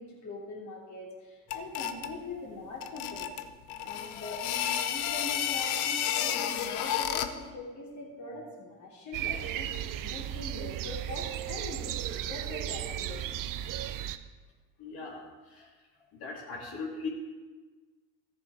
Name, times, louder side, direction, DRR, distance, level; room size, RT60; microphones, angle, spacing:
voice 1, 0.0-3.4 3.8-13.3, left 2 dB, 40° left, -3 dB, 3.1 m, -42 dB
sound 1, 1.5-2.2 2.8-7.4, left 10 dB, 90° left, 0.8 m, -31 dB
sound 2, 9.1-14.2, right 11 dB, 50° right, 0.7 m, -35 dB
voice 2, 14.8-15.2 15.5-15.7 16.1-17.1, left 4 dB, 60° left, -3 dB, 3.2 m, -39 dB
14.0 x 6.8 x 5.0 m, 1.3 s
supercardioid pair, 85°, 43 cm